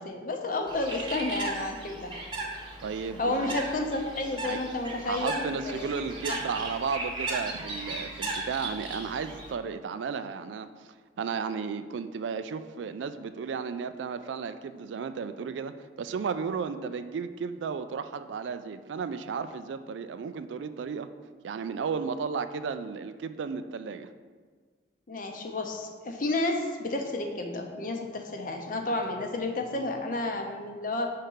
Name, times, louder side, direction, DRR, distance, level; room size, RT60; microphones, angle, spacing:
voice 1, 0.0-2.1 3.2-5.8 25.1-31.1, left 2 dB, 50° left, 4 dB, 0.7 m, -31 dB
Bird, 0.7-9.5, right 2 dB, 25° right, 0.9 m, -36 dB
voice 2, 2.8-3.6 4.4-4.6 5.0-10.9 11.2-21.1 21.4-24.1, right 5 dB, 85° right, 11 dB, 0.3 m, -34 dB
5.5 x 3.6 x 5.5 m, 1.5 s
head